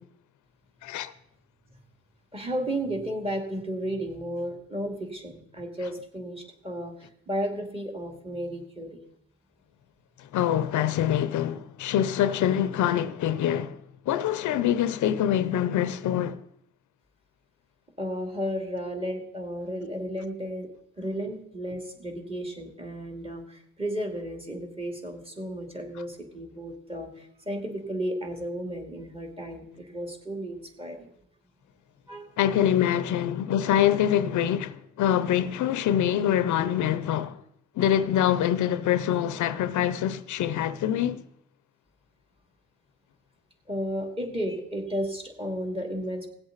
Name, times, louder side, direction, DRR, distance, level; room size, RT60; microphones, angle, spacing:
voice 1, 0.8-1.1 10.2-13.8 14.1-16.4 32.4-37.4 37.8-41.2, left 10 dB, 75° left, 0.7 m, -25 dB
voice 2, 2.3-9.0 18.0-20.7 21.0-31.1 32.1-32.3 35.4-35.5 43.7-46.3, equal, 20° right, 2.5 m, -33 dB
17.5 x 7.9 x 4.1 m
cardioid pair, 90°, 30 cm